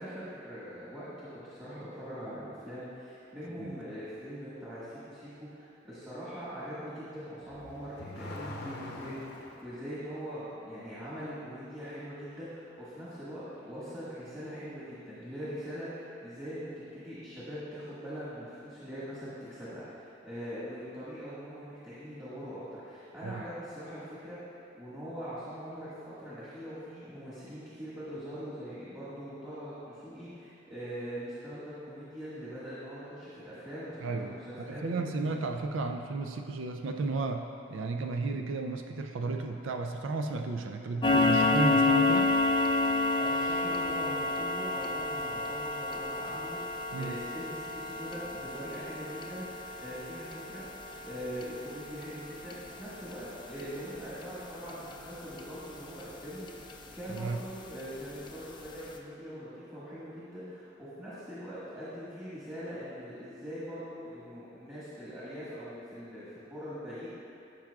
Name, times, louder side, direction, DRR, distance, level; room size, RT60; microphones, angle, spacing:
voice 1, 0.0-35.2 42.9-56.7 56.9-67.1, equal, 15° right, -12 dB, 1.6 m, -42 dB
Car / Accelerating revving vroom, 7.4-9.7, left 2 dB, 55° left, 0.7 m, -43 dB
voice 2, 34.0-34.4 34.7-42.3 46.9-47.2 57.1-57.4, right 3 dB, 75° right, 4 dB, 0.4 m, -33 dB
sound 1, 41.0-56.1 56.5-56.7 57.2-57.3 57.7-57.8 58.3-58.4 58.7-58.8, left 2 dB, 25° left, 0.4 m, -30 dB
13.5 x 5.9 x 2.4 m, 2.7 s
head